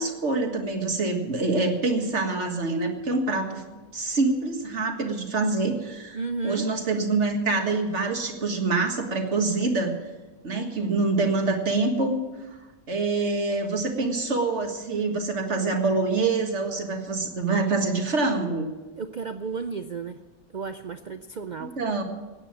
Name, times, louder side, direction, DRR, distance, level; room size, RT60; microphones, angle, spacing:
voice 1, 0.0-3.6 3.9-6.2 6.4-9.9 10.4-12.2 12.9-18.7 21.8-22.0, right 3 dB, 55° right, 4 dB, 2.0 m, -25 dB
voice 2, 6.1-6.6 19.0-20.2 20.5-21.7, right 4 dB, 90° right, 9 dB, 0.4 m, -33 dB
16.0 x 9.5 x 7.3 m, 1.2 s
omnidirectional pair, 1.5 m